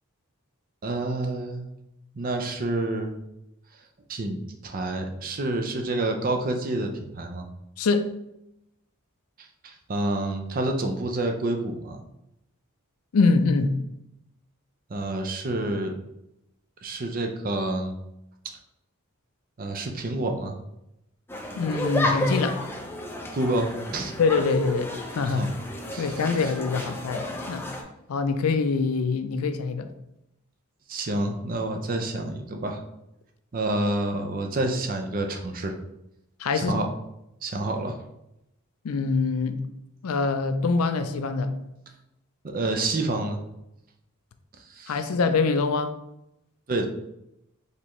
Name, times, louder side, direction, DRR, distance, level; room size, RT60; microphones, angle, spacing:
voice 1, 0.8-1.7 2.2-3.2 4.1-7.5 9.4-12.0 14.9-15.9 16.8-17.9 18.4-18.6 19.6-20.6 23.3-24.1 25.2-25.6 25.9-26.3 30.9-32.8 33.5-35.7 36.5-36.9 37.4-38.0 42.4-43.4 44.7-45.0 46.7-46.9, right 2 dB, 40° right, 0.5 m, -28 dB
voice 2, 7.8-8.1 13.1-13.7 21.5-22.6 24.2-24.9 25.1-25.5 26.0-27.7 28.1-29.9 36.4-36.8 38.8-39.6 40.0-41.5 44.9-45.9, left 4 dB, 75° left, 0.4 m, -24 dB
sound 1, 21.3-27.8, left 1 dB, 10° left, 0.4 m, -32 dB
4.4 x 3.4 x 3.0 m
head